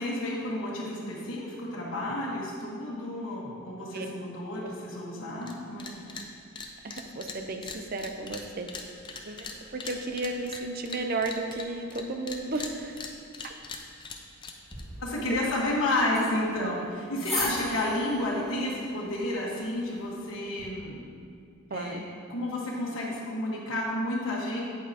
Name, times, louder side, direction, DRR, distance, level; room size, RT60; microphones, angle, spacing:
voice 1, 0.0-6.1 13.1-13.2 15.0-21.0 21.7-22.0 22.3-24.6, left 1 dB, 70° left, -6 dB, 1.3 m, -31 dB
sound 1, 5.4-5.5 5.8-6.3 6.5-12.0 12.3-14.8, left 4 dB, 20° left, 0.5 m, -40 dB
voice 2, 6.8-8.7 9.3-13.0 13.4-13.5 21.7-22.0, right 2 dB, 45° right, 5 dB, 0.5 m, -33 dB
sound 2, 14.7-20.7, left 1 dB, ahead, 1.6 m, -40 dB
8.9 x 8.3 x 2.8 m, 2.3 s
head